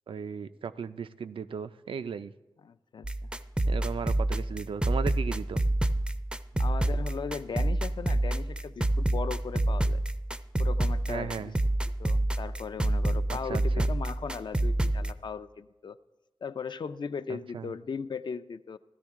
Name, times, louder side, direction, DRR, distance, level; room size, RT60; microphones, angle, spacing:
voice 1, 0.1-2.3 3.7-5.6 6.5-6.6 11.1-11.6 13.3-13.9 17.3-17.7, right 6 dB, 80° right, 11 dB, 0.4 m, -36 dB
voice 2, 2.6-3.3 6.6-10.0 10.6-11.5 12.0-16.0 16.4-18.8, left 5 dB, 60° left, 12 dB, 0.4 m, -38 dB
sound 1, 3.0-15.1, right 1 dB, 10° right, 0.4 m, -28 dB
15.0 x 12.5 x 3.6 m, 1.1 s
wide cardioid pair, 95°, 9 cm